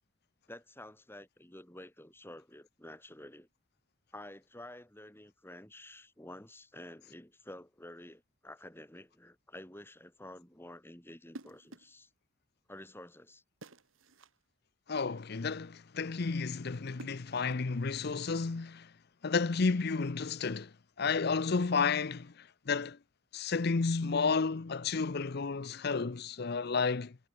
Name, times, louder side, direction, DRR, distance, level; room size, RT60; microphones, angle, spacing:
voice 1, 0.5-3.5 4.1-12.1 12.7-13.4 25.7-25.8, left 1 dB, 10° left, 3.1 m, -50 dB
sound 1, 11.3-12.0 13.6-14.4 16.7-17.8, right 2 dB, 80° right, 2.0 m, -52 dB
voice 2, 14.9-18.9 19.2-20.7 21.0-23.0 23.3-27.2, left 4 dB, 50° left, 0.6 m, -32 dB
head